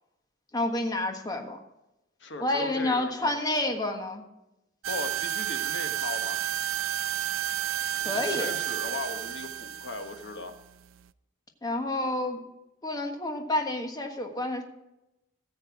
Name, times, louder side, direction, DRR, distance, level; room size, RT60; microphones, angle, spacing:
voice 1, 0.5-1.6 2.4-4.2 8.0-8.5 11.6-12.4 12.8-14.6, left 2 dB, 20° left, 4 dB, 1.4 m, -29 dB
voice 2, 2.2-3.3 4.9-6.4 7.9-10.6, left 3 dB, 65° left, 6 dB, 1.3 m, -38 dB
sound 1, 4.8-11.1, right 11 dB, 85° right, 0.4 m, -32 dB
14.5 x 7.9 x 4.8 m, 0.92 s
head